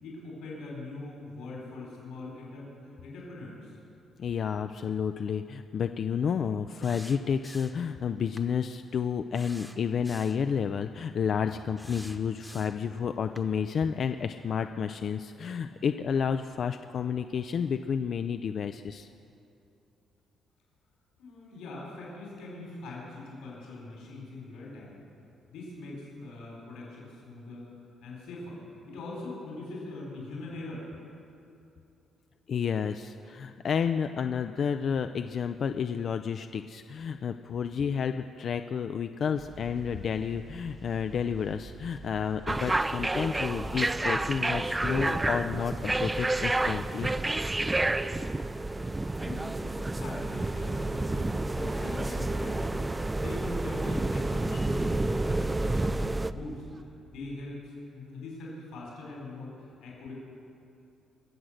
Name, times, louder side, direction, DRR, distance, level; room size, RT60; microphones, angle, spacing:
voice 1, 0.0-2.7 3.0-3.8 21.2-25.0 25.5-27.7 28.0-30.8 49.2-60.1, left 2 dB, 90° left, -3 dB, 4.1 m, -42 dB
voice 2, 4.2-19.1 32.5-47.1, left 7 dB, 55° left, 8 dB, 0.4 m, -31 dB
sound 1, 6.8-7.9 8.4-8.5 9.3-10.4 11.8-12.9 13.4-13.5, equal, ahead, 1.0 m, -49 dB
sound 2, 39.4-56.8, right 3 dB, 35° right, 0.8 m, -48 dB
sound 3, 42.5-56.3, right 2 dB, 15° right, 0.4 m, -29 dB
22.5 x 7.6 x 6.5 m, 2.6 s
cardioid pair, 90°, 0 cm